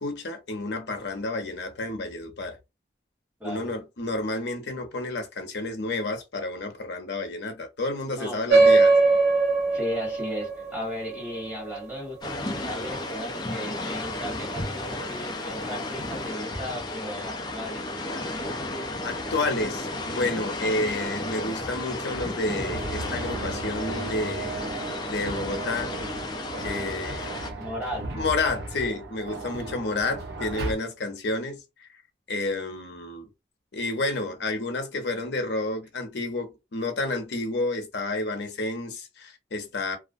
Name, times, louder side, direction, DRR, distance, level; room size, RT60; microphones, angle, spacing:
voice 1, 0.0-2.6 3.4-9.0 19.0-24.6 25.1-25.9 26.6-27.4 28.2-31.6 32.3-33.3 33.7-40.0, left 2 dB, 80° left, 0.7 m, -30 dB
voice 2, 3.4-3.7 8.1-8.7 9.7-17.9 27.1-28.1, left 1 dB, 10° right, 1.2 m, -36 dB
sound 1, 8.5-13.4, right 3 dB, 60° right, 1.0 m, -22 dB
sound 2, 12.2-27.5, left 2 dB, 25° left, 0.4 m, -33 dB
sound 3, 22.1-30.7, right 2 dB, 80° right, 0.7 m, -36 dB
2.3 x 2.0 x 2.5 m
head